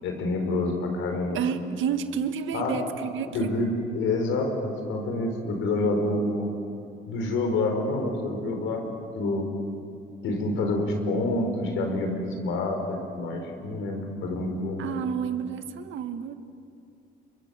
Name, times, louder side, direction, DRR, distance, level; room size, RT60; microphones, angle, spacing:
voice 1, 0.0-1.4 2.5-2.7 3.3-6.5 7.1-8.8 9.2-9.5 10.2-15.0, left 2 dB, 85° left, 4 dB, 5.3 m, -27 dB
voice 2, 1.3-3.7 14.8-16.3, right 7 dB, 80° right, 9 dB, 1.6 m, -30 dB
28.5 x 24.0 x 7.5 m, 2.5 s
cardioid pair, 90°, 20 cm